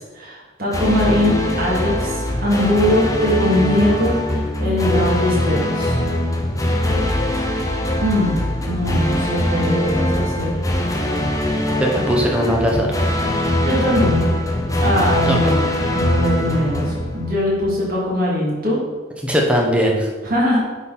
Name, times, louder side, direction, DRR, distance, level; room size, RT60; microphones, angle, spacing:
voice 1, 0.2-6.0 8.0-10.6 13.6-14.3 14.8-15.7 15.9-18.8 20.2-20.6, left 1 dB, 45° right, -6 dB, 2.5 m, -21 dB
sound 1, 0.7-17.8, left 1 dB, 15° left, 0.7 m, -21 dB
voice 2, 11.8-12.9 15.3-15.4 19.2-20.1, equal, 5° right, -1 dB, 1.0 m, -19 dB
9.9 x 4.0 x 4.2 m, 1.3 s
head